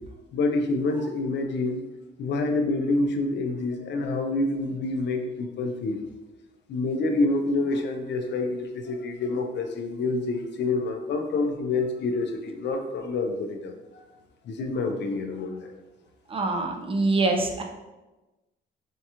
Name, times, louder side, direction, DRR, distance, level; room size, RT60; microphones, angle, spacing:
voice 1, 0.3-1.8 2.2-6.0 6.7-13.7 14.5-15.7, left 3 dB, 65° left, 5 dB, 0.5 m, -27 dB
voice 2, 16.3-17.6, right 3 dB, 30° right, 3 dB, 0.5 m, -24 dB
4.4 x 2.3 x 2.8 m, 1.1 s
cardioid pair, 90°, 20 cm